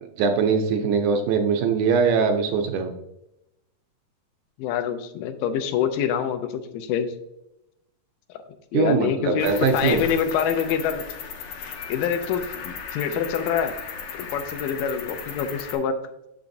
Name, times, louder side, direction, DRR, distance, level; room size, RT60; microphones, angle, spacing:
voice 1, 0.2-2.9 8.7-10.1, right 5 dB, 80° right, 5 dB, 1.8 m, -22 dB
voice 2, 4.6-7.1 8.7-11.1 11.9-13.8 14.2-16.0, left 8 dB, 85° left, 8 dB, 2.2 m, -25 dB
Cricket, 9.4-15.8, left 6 dB, 70° left, 1.8 m, -36 dB
7.0 x 5.9 x 2.6 m, 0.86 s
omnidirectional pair, 3.9 m